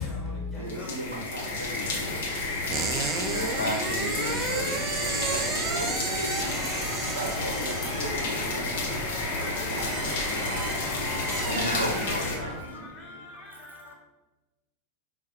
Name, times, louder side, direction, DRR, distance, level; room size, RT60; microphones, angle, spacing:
voice 1, 0.0-1.8 2.1-2.5 4.7-5.3 7.0-7.2 9.8-13.9, left 3 dB, 25° left, -2 dB, 1.5 m, -41 dB
voice 2, 0.5-2.2 4.8-6.6 7.1-8.8 9.1-10.7 11.4-13.2, right 2 dB, 70° right, 2 dB, 0.8 m, -37 dB
sound 1, 0.7-12.4, left 2 dB, 55° left, 1.0 m, -31 dB
sound 2, 2.7-12.7, right 5 dB, 25° right, 0.5 m, -34 dB
voice 3, 3.2-4.8 11.5-12.6, left 2 dB, 75° left, 0 dB, 0.5 m, -33 dB
sound 3, 6.4-11.5, left 1 dB, 5° left, 0.9 m, -40 dB
4.8 x 2.6 x 3.9 m, 1.1 s
figure-of-eight pair, 90°, 0 cm